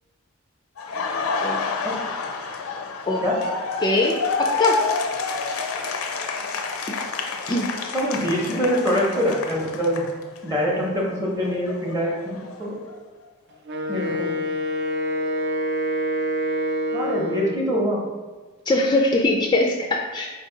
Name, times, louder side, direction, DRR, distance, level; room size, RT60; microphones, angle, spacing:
Laughter, 0.8-10.6 10.9-12.9, left 4 dB, 85° left, 0.5 m, -29 dB
voice 1, 3.8-4.8 6.9-7.0 7.5-7.7 18.7-20.3, left 2 dB, 20° left, 1 dB, 0.3 m, -21 dB
voice 2, 7.9-10.1 10.4-12.7 13.9-14.3 16.9-18.0, equal, 15° right, -3 dB, 0.7 m, -24 dB
Wind instrument woodwind instrument, 13.7-17.7, equal, 55° right, 0.4 m, -26 dB
4.7 x 2.7 x 3.8 m, 1.3 s
head